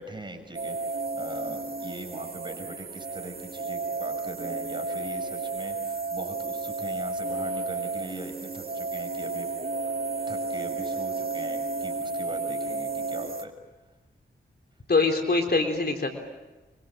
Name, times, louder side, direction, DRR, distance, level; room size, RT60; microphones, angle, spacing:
voice 1, 0.0-9.5 9.8-9.9 10.3-13.5, right 1 dB, 25° right, 5 dB, 6.5 m, -41 dB
sound 1, 0.5-13.4, right 3 dB, 50° right, 2.3 m, -32 dB
voice 2, 14.9-16.1, left 3 dB, 55° left, 4 dB, 4.0 m, -23 dB
25.0 x 24.0 x 7.6 m, 1.1 s
cardioid pair, 50°, 20 cm